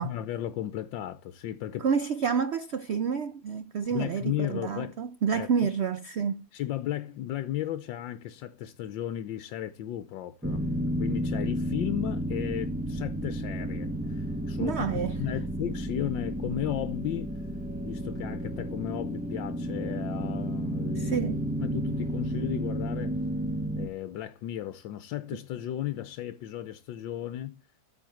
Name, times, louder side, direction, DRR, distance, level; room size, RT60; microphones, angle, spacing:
voice 1, 0.0-1.9 3.9-5.0 5.3-5.7 6.5-10.6 11.0-17.4 17.8-21.2 21.6-23.2 23.8-27.6, left 12 dB, 85° left, 1.5 m, -35 dB
voice 2, 1.8-6.5 14.6-15.2 21.0-21.4, right 6 dB, 85° right, 0.5 m, -29 dB
sound 1, 10.4-23.9, equal, 10° right, 0.5 m, -32 dB
13.5 x 4.7 x 7.6 m
omnidirectional pair, 2.0 m